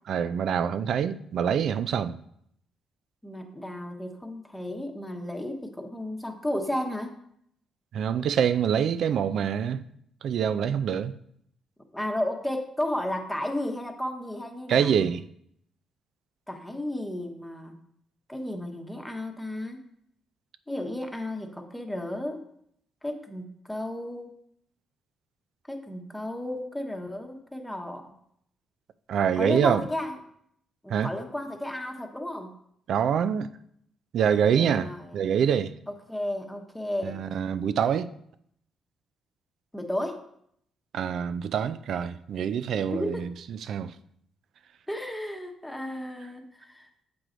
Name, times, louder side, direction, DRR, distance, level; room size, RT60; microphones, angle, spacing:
voice 1, 0.1-2.2 7.9-9.8 10.2-11.1 14.7-15.3 29.1-29.8 30.9-31.1 32.9-33.5 34.1-35.7 37.0-38.1 40.9-43.9, right 8 dB, 70° right, 0.4 m, -25 dB
voice 2, 3.2-7.1 11.9-14.9 16.5-17.7 18.3-19.8 20.7-22.4 23.0-24.3 25.7-28.1 29.4-30.2 30.8-32.5 34.5-35.1 36.1-37.2 39.7-40.2 42.9-43.3 44.9-46.9, left 1 dB, 5° left, 1.0 m, -33 dB
7.7 x 4.7 x 3.8 m
cardioid pair, 90°, 0 cm